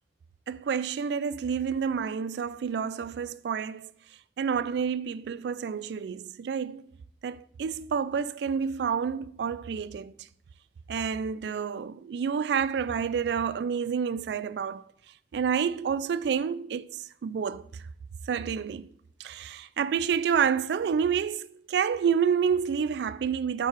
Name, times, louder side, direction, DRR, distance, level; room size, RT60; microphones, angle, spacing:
voice 1, 0.5-3.9 4.4-6.8 7.2-10.1 10.9-14.8 15.3-16.9 17.2-17.6 18.3-18.9 19.2-23.7, right 7 dB, 70° right, 0.3 m, -29 dB
4.8 x 4.5 x 4.8 m
head